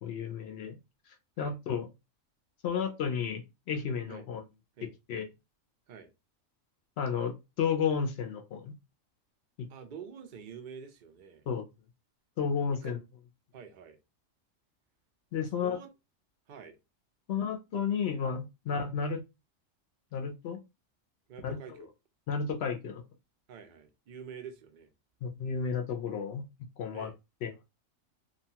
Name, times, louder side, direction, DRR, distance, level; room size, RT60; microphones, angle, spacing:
voice 1, 0.0-0.8 1.4-1.9 2.6-4.4 5.1-5.3 7.0-8.7 9.6-9.7 11.5-11.6 12.4-13.0 15.3-15.8 17.3-19.2 20.1-20.6 21.4-21.6 22.3-23.0 25.2-26.4 26.8-27.1 27.4-27.5, left 6 dB, 65° left, 0.7 m, -32 dB
voice 2, 9.7-11.4 12.7-13.0 13.5-14.0 15.5-15.9 16.5-16.8 18.7-18.9 21.3-21.9 23.5-24.9 26.9-27.1, right 7 dB, 55° right, 0.5 m, -47 dB
2.8 x 2.2 x 2.7 m
omnidirectional pair, 1.4 m